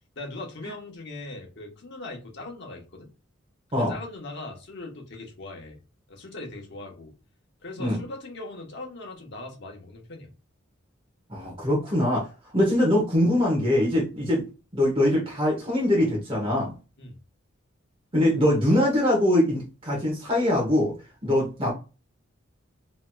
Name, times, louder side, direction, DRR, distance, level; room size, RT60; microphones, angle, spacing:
voice 1, 0.2-3.1 3.7-5.8 6.1-7.1 7.6-10.3 17.0-17.2, left 2 dB, 60° left, 1 dB, 1.0 m, -40 dB
voice 2, 11.3-12.3 12.5-14.5 14.7-16.7 18.1-20.9 21.2-21.7, left 1 dB, 25° right, -2 dB, 1.0 m, -22 dB
3.0 x 2.8 x 2.3 m, 0.32 s
head